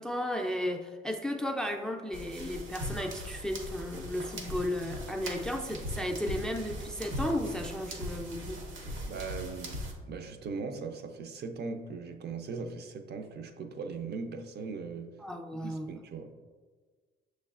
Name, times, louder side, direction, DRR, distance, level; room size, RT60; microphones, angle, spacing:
voice 1, 0.0-8.6 15.2-15.9, left 1 dB, 5° left, 3 dB, 0.3 m, -34 dB
sound 1, 2.1-9.9, equal, 75° right, 0.8 m, -40 dB
voice 2, 9.0-15.2 15.5-16.3, right 4 dB, 55° right, 6 dB, 0.5 m, -39 dB
6.2 x 3.2 x 2.4 m, 1.5 s
cardioid pair, 90°, 20 cm